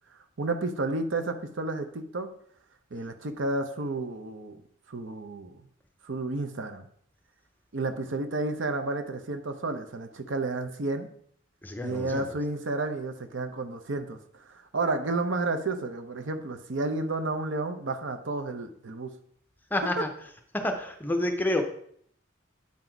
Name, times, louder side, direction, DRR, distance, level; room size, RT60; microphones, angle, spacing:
voice 1, 0.4-2.3 2.9-4.6 4.9-5.6 6.0-6.9 7.7-11.1 11.8-19.1, right 2 dB, 80° right, 7 dB, 0.8 m, -31 dB
voice 2, 11.6-12.3 19.7-20.1 20.5-21.6, left 1 dB, 10° left, 5 dB, 0.7 m, -28 dB
8.6 x 4.0 x 4.5 m, 0.65 s
head